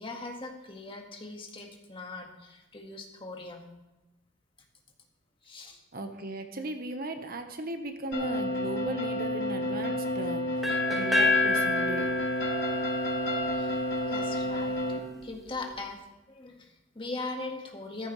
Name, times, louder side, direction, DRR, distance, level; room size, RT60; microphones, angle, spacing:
voice 1, 0.0-3.7 5.4-5.8 13.5-13.8 14.1-14.8 15.2-16.0 16.3-18.1, left 3 dB, 30° left, 2 dB, 1.8 m, -40 dB
voice 2, 5.9-10.4 10.9-12.1, right 2 dB, 50° right, 6 dB, 1.2 m, -36 dB
sound 1, 8.1-15.0, left 1 dB, 90° left, 3.3 m, -30 dB
sound 2, 10.6-14.5, left 3 dB, ahead, 1.8 m, -29 dB
14.5 x 14.0 x 3.3 m, 1.1 s
head